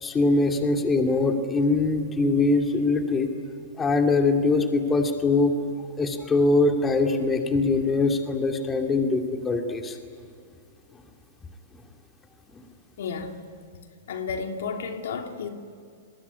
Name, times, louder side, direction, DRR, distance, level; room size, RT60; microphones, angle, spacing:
voice 1, 0.0-3.3 3.8-5.5 6.0-10.0 12.5-12.6, left 3 dB, 15° left, 2.5 m, -22 dB
voice 2, 13.0-13.4 14.1-15.5, left 5 dB, 75° left, 2.8 m, -32 dB
28.0 x 21.0 x 9.9 m
hypercardioid pair, 140°, 0 cm